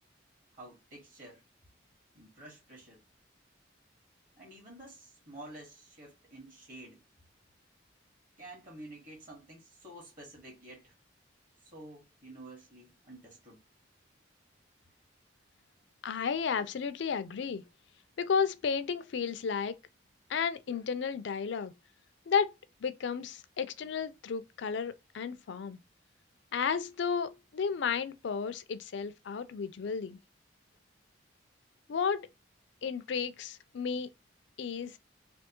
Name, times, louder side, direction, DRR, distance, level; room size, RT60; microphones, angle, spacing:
voice 1, 0.5-1.4 2.1-3.0 4.4-7.0 8.4-10.9 11.6-13.6, right 1 dB, 45° right, 1.7 m, -50 dB
voice 2, 16.0-17.6 18.2-19.8 20.3-21.7 22.3-22.5 22.8-25.8 26.5-30.2 31.9-32.3 32.8-34.1 34.6-34.9, left 6 dB, 70° left, 0.4 m, -33 dB
3.3 x 2.7 x 2.9 m
head